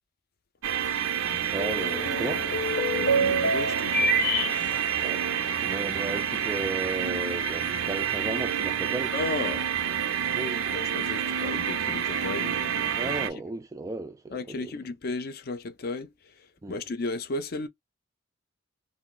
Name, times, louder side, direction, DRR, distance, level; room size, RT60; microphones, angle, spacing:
sound 1, 0.6-13.3, right 8 dB, 85° right, 0.5 m, -28 dB
sound 2, 1.3-5.9, right 2 dB, 80° left, 0.7 m, -30 dB
voice 1, 1.5-2.5 5.0-9.2 10.3-10.7 12.9-14.8 16.6-16.8, right 2 dB, 15° right, 0.3 m, -35 dB
sound 3, 1.7-1.8 2.1-2.2 3.6-5.2 5.7-5.8 6.1-6.6, equal, 5° left, 0.7 m, -27 dB
voice 2, 2.9-4.8 9.1-9.7 10.7-13.2 14.3-16.1 16.7-17.7, left 3 dB, 50° left, 0.4 m, -35 dB
2.5 x 2.0 x 3.7 m
head